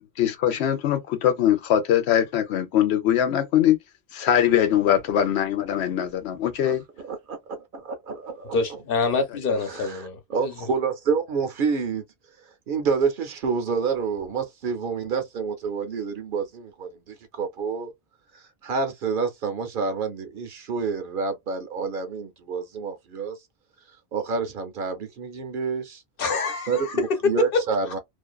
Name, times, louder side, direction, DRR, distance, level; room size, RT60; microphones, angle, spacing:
voice 1, 0.2-3.8 4.1-6.8, left 10 dB, 90° left, 0.9 m, -22 dB
voice 2, 7.0-8.8 9.7-12.0 12.7-17.9 18.3-23.4 24.1-26.0 26.7-28.0, right 5 dB, 60° right, 0.7 m, -28 dB
voice 3, 8.5-10.5 26.2-26.9, left 4 dB, 60° left, 0.9 m, -26 dB
2.5 x 2.3 x 2.2 m
omnidirectional pair, 1.1 m